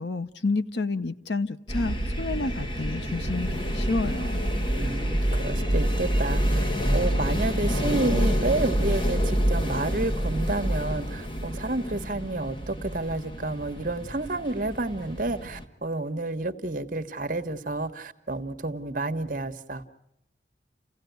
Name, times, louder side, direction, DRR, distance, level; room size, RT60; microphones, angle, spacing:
voice 1, 0.0-4.4, left 3 dB, 70° left, 0.9 m, -30 dB
sound 1, 1.7-15.6, equal, 25° left, 1.5 m, -27 dB
voice 2, 4.8-6.6 6.9-19.8, right 2 dB, 50° right, 1.2 m, -30 dB
29.5 x 16.5 x 9.3 m
head